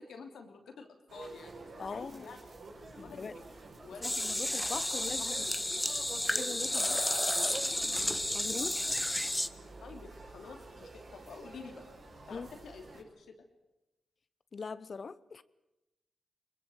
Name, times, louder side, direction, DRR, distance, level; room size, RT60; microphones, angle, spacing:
voice 1, 0.0-2.4 3.0-3.5 3.8-5.8 6.7-8.1 9.8-11.8 12.3-13.4, left 5 dB, 85° left, 3.0 m, -50 dB
sound 1, 1.1-13.0, right 3 dB, 70° right, 6.6 m, -49 dB
voice 2, 1.8-2.3 3.0-3.3 4.0-5.5 6.4-7.0 8.3-8.9 12.3-12.5 14.5-15.4, left 5 dB, 60° left, 1.0 m, -41 dB
sound 2, 4.0-9.5, left 1 dB, 15° left, 1.2 m, -32 dB
22.5 x 21.0 x 8.0 m
supercardioid pair, 45°, 0 cm